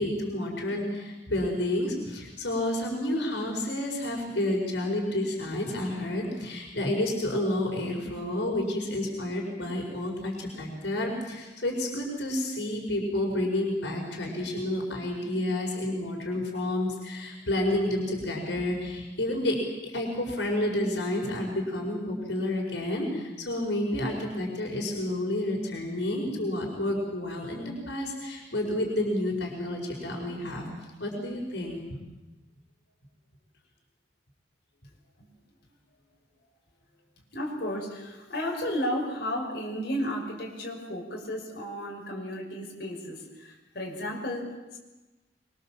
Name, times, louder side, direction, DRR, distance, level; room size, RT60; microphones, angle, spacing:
voice 1, 0.0-19.6 19.9-30.7 31.0-31.8, left 1 dB, 85° left, 0 dB, 5.2 m, -30 dB
voice 2, 37.3-44.8, equal, 60° left, -2 dB, 5.8 m, -33 dB
25.0 x 23.5 x 7.5 m, 1.1 s
head